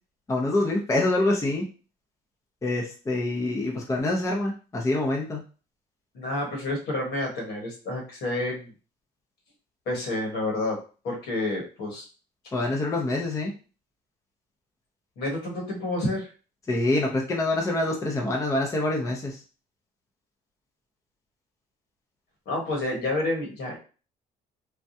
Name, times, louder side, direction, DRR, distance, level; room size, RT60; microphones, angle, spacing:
voice 1, 0.3-1.7 2.6-5.4 12.5-13.5 16.7-19.4, left 2 dB, 20° left, 0 dB, 0.6 m, -26 dB
voice 2, 6.1-8.7 9.9-12.0 15.2-16.3 22.5-23.8, left 2 dB, 75° left, 0 dB, 1.4 m, -29 dB
3.4 x 2.2 x 2.7 m, 0.36 s
cardioid pair, 110°, 17 cm